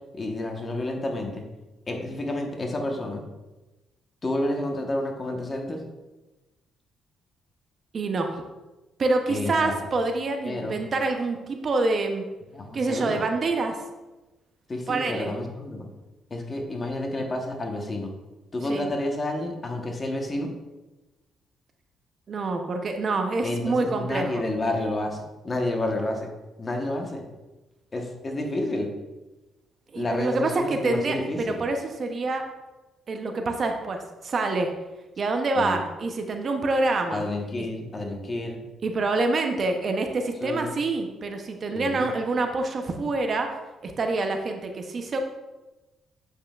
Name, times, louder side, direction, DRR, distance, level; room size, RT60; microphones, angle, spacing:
voice 1, 0.1-1.4 1.9-3.2 4.2-5.8 9.3-9.7 10.4-10.8 12.5-13.2 14.7-15.9 16.3-18.1 18.5-20.5 23.4-26.3 26.6-27.2 27.9-28.9 29.9-31.6 35.5-35.8 37.1-38.6 40.4-40.8 41.7-42.1, left 1 dB, 30° left, 2 dB, 1.1 m, -30 dB
voice 2, 7.9-8.4 9.0-12.2 12.7-13.8 14.9-15.3 18.7-18.8 22.3-24.3 29.9-32.4 33.1-34.7 35.2-37.2 38.8-43.6 43.8-45.2, right 3 dB, 45° right, 5 dB, 0.7 m, -26 dB
7.8 x 5.5 x 2.4 m, 1.1 s
cardioid pair, 90°, 0 cm